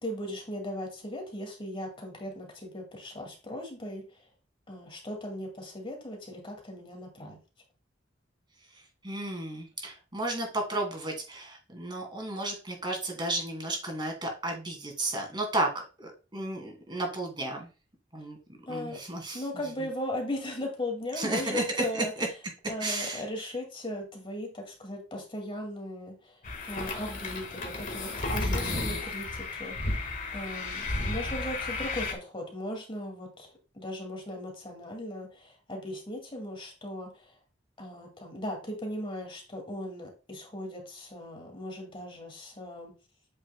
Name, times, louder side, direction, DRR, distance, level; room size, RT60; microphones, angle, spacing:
voice 1, 0.0-4.3 4.7-7.4 18.7-19.0 19.3-22.1 22.7-26.4 26.7-37.4 37.8-42.9, left 1 dB, 30° left, 2 dB, 2.2 m, -38 dB
voice 2, 9.0-17.7 18.1-18.4 18.7-19.4 21.2-22.3 22.8-23.2 28.4-29.0, right 2 dB, 25° right, 2 dB, 2.3 m, -33 dB
sound 1, 26.4-32.1, left 2 dB, 45° left, 1.6 m, -33 dB
8.3 x 6.1 x 2.2 m, 0.32 s
head